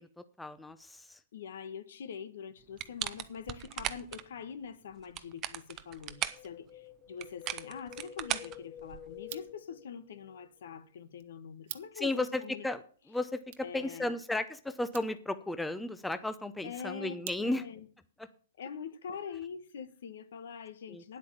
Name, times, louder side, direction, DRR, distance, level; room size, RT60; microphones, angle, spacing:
voice 1, 0.0-1.2 12.0-12.8 13.1-17.6 18.2-18.3 20.9-21.2, left 2 dB, 5° left, 0.7 m, -35 dB
voice 2, 1.3-12.6 13.6-14.1 16.6-17.9 18.6-21.2, left 7 dB, 70° left, 1.4 m, -44 dB
sound 1, 2.8-4.2 5.0-6.5 7.2-9.2, right 13 dB, 30° right, 0.8 m, -38 dB
Wind, 6.1-10.4 10.7-10.8, left 10 dB, 30° left, 1.5 m, -50 dB
sound 2, 9.1-17.9, right 13 dB, 55° right, 1.0 m, -52 dB
9.5 x 8.3 x 7.0 m
hypercardioid pair, 140°, 0 cm